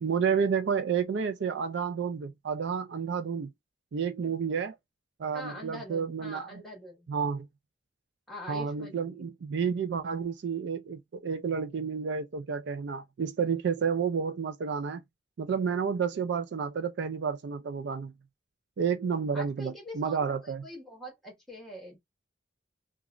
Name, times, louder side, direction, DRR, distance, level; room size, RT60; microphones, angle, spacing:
voice 1, 0.0-3.5 3.9-4.7 5.2-6.6 7.1-7.5 8.5-15.0 15.4-18.1 18.8-20.6, right 6 dB, 65° right, 0.4 m, -30 dB
voice 2, 5.3-7.1 8.3-9.2 19.3-22.0, equal, ahead, 1.4 m, -44 dB
3.0 x 2.3 x 2.4 m
head